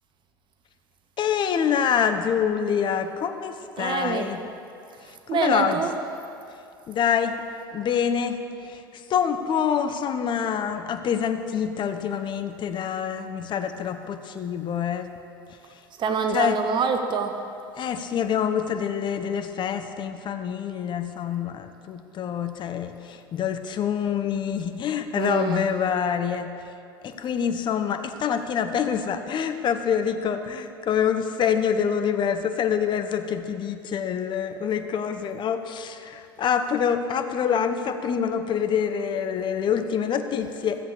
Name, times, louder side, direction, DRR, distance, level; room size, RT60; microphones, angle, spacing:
voice 1, 1.2-4.4 5.3-5.8 6.9-7.3 7.7-8.8 9.1-15.1 16.3-16.6 17.8-26.5 27.0-40.8, left 7 dB, 40° left, 8 dB, 1.0 m, -26 dB
voice 2, 3.8-4.3 5.3-5.9 16.0-17.3 25.1-25.7, right 6 dB, 40° right, 6 dB, 1.1 m, -25 dB
14.0 x 8.0 x 6.8 m, 2.5 s
hypercardioid pair, 75°, 12 cm